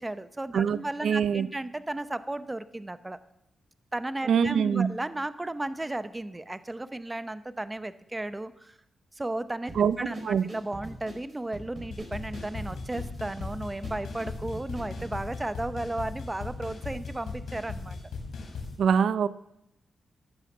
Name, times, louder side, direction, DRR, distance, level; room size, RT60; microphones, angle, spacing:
voice 1, 0.0-3.2 3.9-8.8 9.1-18.0, right 2 dB, 15° right, 13 dB, 0.7 m, -34 dB
voice 2, 1.0-1.5 4.3-4.9 9.8-10.0 10.2-10.5 18.8-19.3, right 7 dB, 80° right, 16 dB, 0.5 m, -23 dB
sound 1, 9.7-15.2, right 1 dB, 40° right, 4.4 m, -44 dB
sound 2, 11.9-18.8, left 4 dB, 80° left, 3.6 m, -38 dB
14.5 x 11.5 x 6.1 m, 0.89 s
cardioid pair, 110°, 0 cm